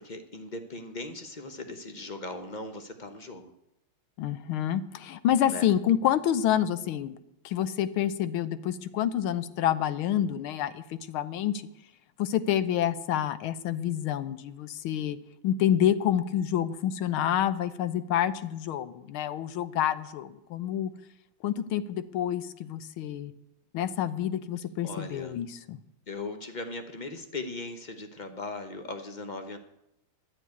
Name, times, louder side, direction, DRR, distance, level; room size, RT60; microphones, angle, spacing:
voice 1, 0.0-3.5 5.4-5.7 24.8-25.4 26.1-29.6, left 2 dB, 45° left, 7 dB, 0.6 m, -39 dB
voice 2, 4.2-7.2 7.5-11.5 12.2-15.2 15.4-20.9 21.4-23.3 23.7-25.8, left 10 dB, 80° left, 14 dB, 1.6 m, -28 dB
12.0 x 7.4 x 9.6 m, 0.83 s
omnidirectional pair, 2.3 m